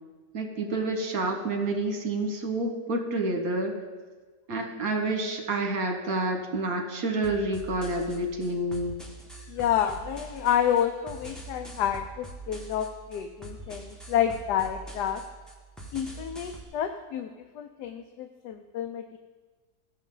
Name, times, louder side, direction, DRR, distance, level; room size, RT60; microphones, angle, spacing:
voice 1, 0.3-3.8 4.5-9.0, right 2 dB, 60° right, 3 dB, 1.6 m, -29 dB
sound 1, 7.2-16.6, right 2 dB, ahead, 1.3 m, -44 dB
voice 2, 9.5-15.2 15.9-17.3 17.5-19.2, left 9 dB, 85° left, 5 dB, 1.2 m, -29 dB
15.5 x 6.4 x 3.8 m, 1.3 s
omnidirectional pair, 1.7 m